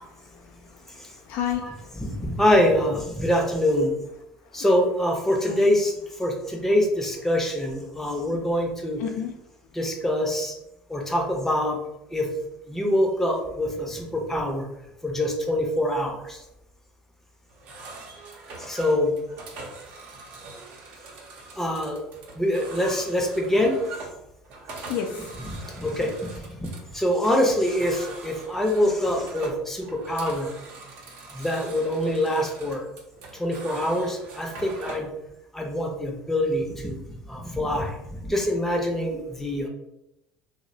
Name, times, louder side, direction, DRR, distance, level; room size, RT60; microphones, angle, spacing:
voice 1, 0.0-2.0 4.5-4.7 5.4-5.7 8.3-8.4 9.0-9.3 24.8-25.8, left 8 dB, 70° left, 3 dB, 0.3 m, -33 dB
voice 2, 1.6-3.9 4.5-5.9 6.2-9.0 9.7-10.5 10.9-11.8 12.1-12.3 12.7-14.7 15.0-16.4 18.6-19.1 21.6-22.0 22.3-23.7 25.4-25.5 25.8-26.1 26.6-26.7 26.9-30.5 31.3-32.9 33.3-35.1 35.5-37.9 38.2-39.7, left 1 dB, 10° left, 0 dB, 0.6 m, -24 dB
sound 1, 17.5-35.1, right 3 dB, 65° right, 0.6 m, -42 dB
2.7 x 2.0 x 2.6 m, 0.87 s
supercardioid pair, 85°, 3 cm